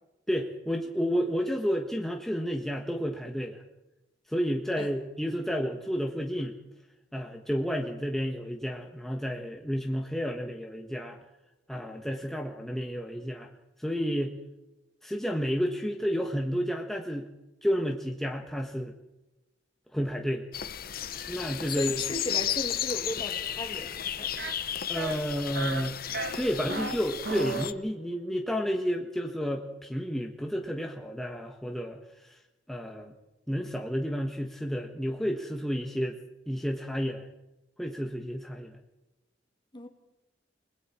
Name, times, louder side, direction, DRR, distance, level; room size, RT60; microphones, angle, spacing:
voice 1, 0.3-3.6 4.3-6.5 7.1-11.2 11.7-13.5 13.8-14.3 15.0-17.3 17.6-18.9 19.9-20.5 21.3-22.0 24.9-26.0 26.4-32.4 32.7-33.1 33.5-36.2 36.5-37.3 37.8-38.8, equal, ahead, 1 dB, 1.6 m, -31 dB
sound 1, 20.5-27.7, left 10 dB, 55° left, 1.0 m, -34 dB
voice 2, 21.7-24.3 39.7-39.9, left 1 dB, 25° left, 4 dB, 2.7 m, -36 dB
sound 2, 24.4-24.5 25.0-25.2 25.6-25.9 26.1-26.9 27.2-27.7, right 3 dB, 65° right, 1.8 m, -34 dB
30.0 x 21.0 x 4.5 m, 0.99 s
head